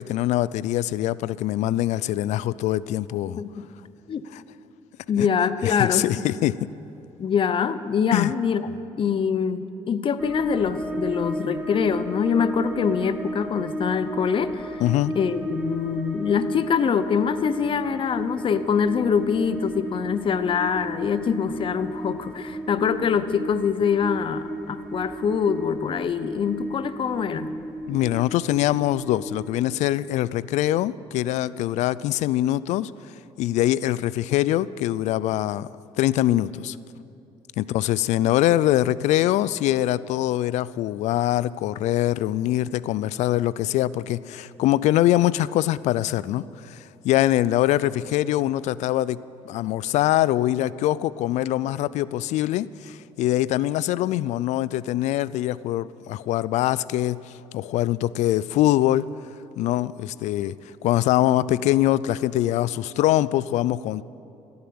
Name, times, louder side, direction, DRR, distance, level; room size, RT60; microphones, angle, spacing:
voice 1, 0.0-3.4 4.3-4.4 5.2-5.3 5.6-6.5 8.1-8.3 14.8-15.1 27.9-32.9 33.4-35.7 36.0-36.8 37.6-46.8 47.0-49.2 49.5-59.0 59.6-60.5 60.8-64.0, left 14 dB, 75° left, 0.4 m, -23 dB
voice 2, 3.4-3.7 4.1-4.2 5.1-6.1 7.2-8.7 9.0-14.8 15.1-27.5, left 7 dB, 45° left, 0.8 m, -24 dB
sound 1, 10.2-29.6, right 1 dB, 5° right, 1.4 m, -34 dB
15.5 x 9.6 x 8.7 m
supercardioid pair, 75°, 12 cm